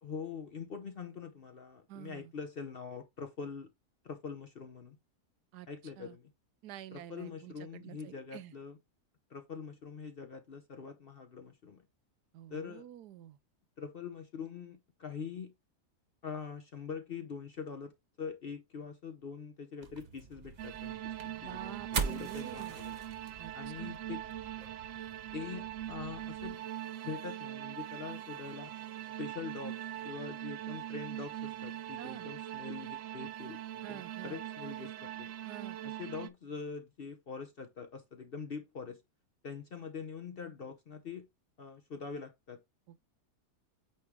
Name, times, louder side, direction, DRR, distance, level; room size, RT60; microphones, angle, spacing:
voice 1, 0.0-3.7 4.0-5.0 5.7-6.3 6.9-8.8 9.3-11.8 12.5-12.9 13.8-15.5 16.2-17.9 18.2-23.0 23.5-24.2 25.3-26.6 27.0-28.7 29.2-29.8 30.0-35.3 36.0-39.0 39.4-41.3 41.6-42.6, left 5 dB, 50° left, 0.7 m, -44 dB
voice 2, 1.9-2.3 5.5-5.7 6.0-6.2 6.6-8.5 12.3-13.4 21.3-22.8 23.4-24.0 32.0-32.3 33.8-34.4 35.5-35.8 42.9-43.0, right 12 dB, 85° right, 1.1 m, -48 dB
sound 1, 19.8-26.6, right 5 dB, 40° right, 0.7 m, -42 dB
sound 2, 20.6-36.3, right 12 dB, 65° right, 0.9 m, -42 dB
8.7 x 3.0 x 3.6 m
omnidirectional pair, 1.7 m